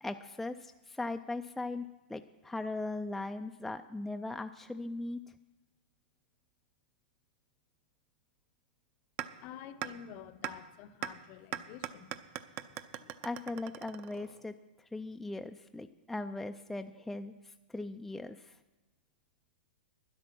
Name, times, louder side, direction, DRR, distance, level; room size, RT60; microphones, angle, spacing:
voice 1, 0.0-5.2 13.2-18.6, left 2 dB, 5° left, 0.4 m, -39 dB
sound 1, 9.2-9.3 9.8-9.9 10.4-10.5 11.0-11.1 11.5-14.4, right 12 dB, 35° right, 0.7 m, -39 dB
voice 2, 9.4-13.1, left 9 dB, 40° left, 0.8 m, -50 dB
12.0 x 10.5 x 6.1 m
hypercardioid pair, 135°, 5 cm